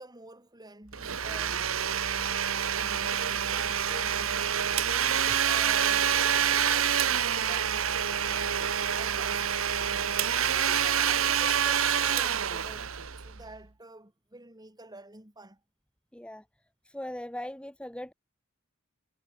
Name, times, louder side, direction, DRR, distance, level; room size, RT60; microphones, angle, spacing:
voice 1, 0.0-2.0 2.7-8.6 9.0-9.5 9.8-15.6, right 2 dB, 20° right, 5.9 m, -48 dB
Domestic sounds home sounds, 0.9-13.5, right 8 dB, 85° right, 1.3 m, -27 dB
voice 2, 16.1-16.4 16.8-18.1, left 1 dB, 5° left, 1.5 m, -39 dB
head